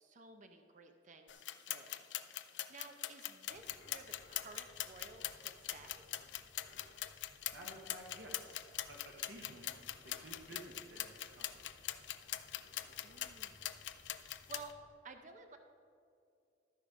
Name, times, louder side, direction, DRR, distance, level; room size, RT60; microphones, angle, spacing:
voice 1, 0.0-6.0 13.0-13.7 14.1-14.7 15.0-15.6, right 4 dB, 45° right, 6 dB, 0.6 m, -55 dB
sound 1, 1.3-14.7, left 13 dB, 80° left, 0.4 m, -42 dB
sound 2, 3.5-14.9, left 1 dB, 55° left, 1.3 m, -64 dB
voice 2, 7.5-8.6 8.9-9.7 10.0-11.7, right 1 dB, 80° right, -1 dB, 1.2 m, -53 dB
13.0 x 5.1 x 5.0 m, 2.5 s
head